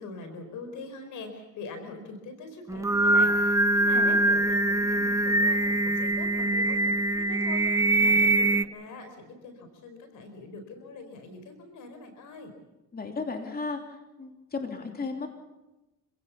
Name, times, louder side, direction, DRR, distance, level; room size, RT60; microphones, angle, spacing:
voice 1, 0.0-12.5, left 3 dB, 80° left, 7 dB, 4.5 m, -43 dB
Singing, 2.7-8.6, right 2 dB, 10° right, 0.7 m, -23 dB
voice 2, 12.9-13.8 14.2-15.3, left 4 dB, 30° left, 3 dB, 3.0 m, -34 dB
26.5 x 16.5 x 7.1 m, 1.0 s
cardioid pair, 90°, 30 cm